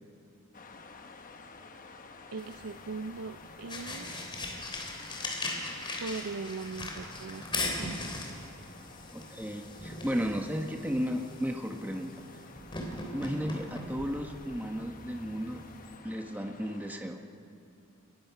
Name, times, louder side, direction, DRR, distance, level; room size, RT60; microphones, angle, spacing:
sound 1, 0.5-17.0, left 4 dB, 40° left, 1.0 m, -52 dB
voice 1, 2.3-4.4 6.0-8.3, right 4 dB, 80° right, 10 dB, 0.5 m, -40 dB
sound 2, 2.4-16.0, left 2 dB, 20° left, 3.2 m, -40 dB
voice 2, 9.1-12.1 13.1-15.6 16.0-17.2, equal, 10° right, 3 dB, 1.0 m, -34 dB
29.5 x 20.0 x 5.7 m, 2.6 s
head